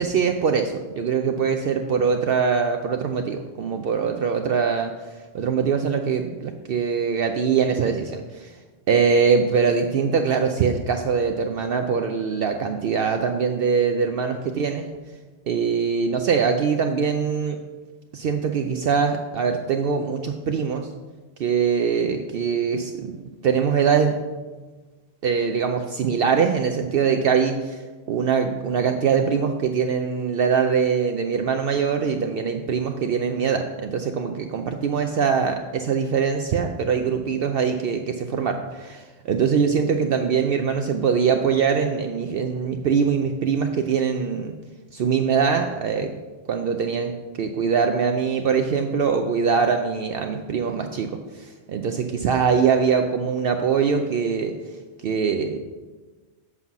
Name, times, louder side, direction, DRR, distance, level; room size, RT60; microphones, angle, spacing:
voice 1, 0.0-4.9 5.3-8.5 8.9-14.9 15.5-17.6 18.1-20.9 21.4-23.1 23.4-24.1 25.2-27.8 28.1-44.5 44.9-46.1 46.5-47.1 47.4-54.5 55.0-55.6, right 6 dB, 60° right, 5 dB, 0.7 m, -22 dB
8.0 x 5.6 x 5.9 m, 1.3 s
omnidirectional pair, 1.2 m